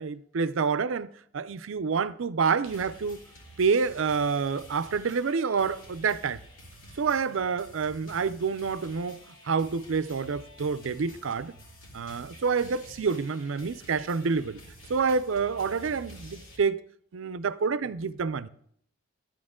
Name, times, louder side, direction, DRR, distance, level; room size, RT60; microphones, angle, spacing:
voice 1, 0.0-3.2 3.6-6.4 7.0-9.2 9.4-11.5 11.9-14.6 14.9-16.8 17.1-18.5, right 5 dB, 75° right, 0.5 m, -28 dB
sound 1, 2.6-16.6, equal, 75° left, 2.6 m, -50 dB
11.0 x 8.7 x 3.7 m
head